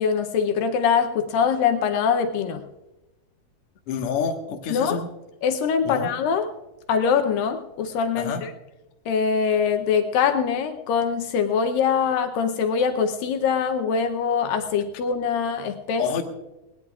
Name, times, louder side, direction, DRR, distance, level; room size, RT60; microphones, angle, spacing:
voice 1, 0.0-2.6 4.7-5.0 5.4-6.5 6.9-8.5 9.1-16.2, left 6 dB, 75° left, 7 dB, 2.4 m, -23 dB
voice 2, 3.9-5.1 5.8-6.1 8.2-8.4 16.0-16.2, left 6 dB, 55° left, 3 dB, 1.8 m, -27 dB
19.5 x 19.5 x 2.4 m, 1.0 s
omnidirectional pair, 4.2 m